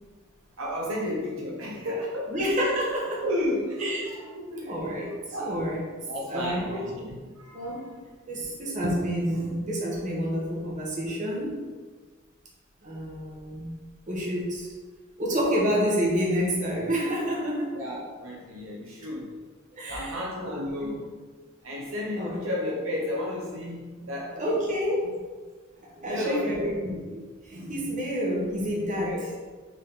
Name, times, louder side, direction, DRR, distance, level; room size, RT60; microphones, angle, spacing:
voice 1, 0.6-2.3 3.2-4.9 5.3-5.6 6.1-7.9 10.1-10.4 17.7-19.4 19.9-21.1 21.6-24.5 25.9-26.8 29.0-29.3, left 1 dB, 75° right, -2 dB, 1.0 m, -33 dB
voice 2, 2.3-3.2 3.8-4.0 4.7-5.8 6.2-7.1 7.5-7.9 8.3-11.6 12.8-13.8 14.1-14.7 15.2-17.7 19.8-20.1 20.8-21.0 22.2-22.5 24.3-25.2 26.0-29.2, equal, 40° right, -3 dB, 1.4 m, -29 dB
6.4 x 3.8 x 3.8 m, 1.4 s
head